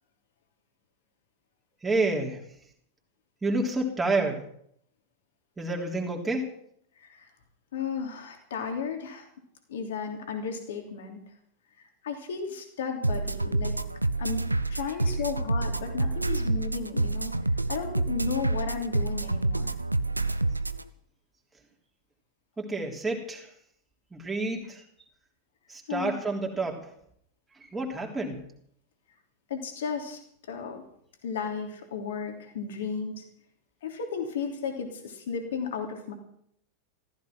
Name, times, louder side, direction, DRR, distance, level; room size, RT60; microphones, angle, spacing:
voice 1, 1.8-2.4 3.4-4.4 5.6-6.4 22.6-23.5 24.1-24.8 25.7-26.8 27.7-28.4, right 2 dB, 10° right, 0 dB, 3.3 m, -29 dB
voice 2, 7.7-9.2 9.7-11.2 12.0-13.7 14.2-14.4 14.7-17.3 17.7-19.7 25.9-26.2 29.5-30.2 30.5-30.8 31.2-33.2 33.8-36.1, left 6 dB, 60° left, 3 dB, 3.1 m, -34 dB
sound 1, 13.0-20.8, right 2 dB, 85° right, 0.7 m, -28 dB
15.0 x 14.5 x 6.1 m, 0.69 s
figure-of-eight pair, 90°, 0 cm